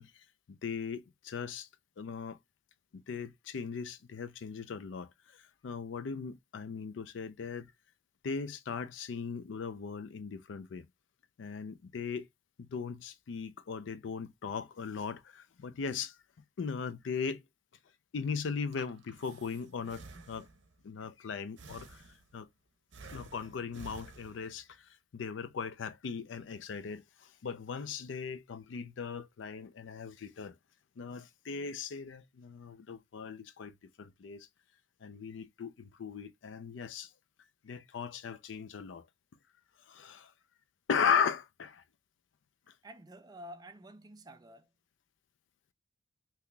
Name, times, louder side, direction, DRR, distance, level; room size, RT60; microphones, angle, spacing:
voice 1, 0.0-1.7 2.0-2.4 2.9-7.7 8.2-10.9 11.4-12.3 12.6-16.2 16.6-17.5 18.1-20.5 20.8-22.5 23.1-30.6 31.0-34.5 35.0-37.1 37.6-39.1 39.8-40.3 40.9-41.8 42.7-42.8, left 6 dB, 75° left, 0.4 m, -38 dB
Breathing, 18.7-20.8 21.6-22.5 22.9-24.7, right 3 dB, 70° right, 0.7 m, -52 dB
voice 2, 42.8-44.7, equal, 20° right, 0.4 m, -50 dB
3.7 x 2.8 x 2.2 m
head